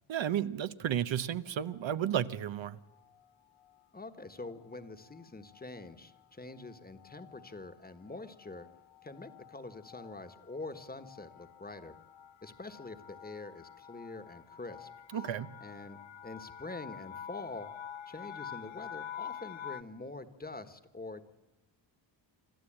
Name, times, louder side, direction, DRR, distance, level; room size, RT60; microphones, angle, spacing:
voice 1, 0.1-2.8 15.1-15.5, right 10 dB, 70° right, 0.9 m, -32 dB
sound 1, 1.7-2.2 2.9-3.3 3.6-3.8 4.0-19.8, left 9 dB, 75° left, 0.9 m, -49 dB
voice 2, 3.9-8.7 9.0-11.9 12.4-15.3 15.6-17.7 18.1-21.2, left 3 dB, 20° left, 1.3 m, -45 dB
26.5 x 13.0 x 8.7 m
wide cardioid pair, 120°, 47 cm